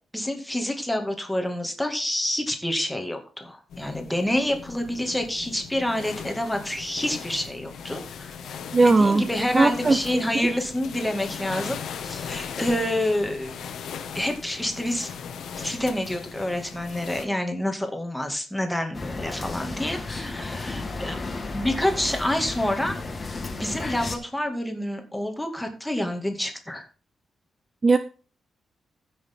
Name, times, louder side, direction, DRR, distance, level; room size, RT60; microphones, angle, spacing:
voice 1, 0.1-8.3 8.8-13.6 14.1-15.1 15.6-21.2 21.5-22.9 23.6-26.8, left 1 dB, 5° left, 4 dB, 2.1 m, -28 dB
sound 1, 3.7-17.3, left 7 dB, 75° left, 1.6 m, -38 dB
voice 2, 8.7-9.3 9.5-10.0 27.8-28.0, right 3 dB, 25° right, 11 dB, 0.6 m, -18 dB
sound 2, 18.9-24.1, left 3 dB, 25° left, 2.0 m, -33 dB
15.5 x 6.5 x 3.7 m, 0.37 s
wide cardioid pair, 150°, 0 cm